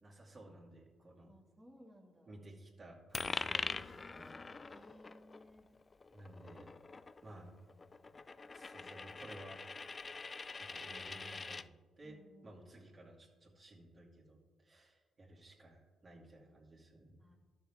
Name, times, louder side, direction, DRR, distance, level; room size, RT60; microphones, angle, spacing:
voice 1, 0.0-1.3 2.3-5.0 6.1-6.7 7.2-7.5 8.5-9.6 10.6-12.2 12.4-17.2, right 1 dB, 40° right, -3 dB, 2.3 m, -55 dB
voice 2, 1.3-2.4 4.7-5.7 8.0-8.2 12.0-12.7 17.2-17.4, equal, 5° right, -4 dB, 1.9 m, -61 dB
Coin (dropping), 3.1-11.7, left 4 dB, 35° left, 0.3 m, -44 dB
12.5 x 6.5 x 3.5 m, 1.4 s
supercardioid pair, 60°, 0 cm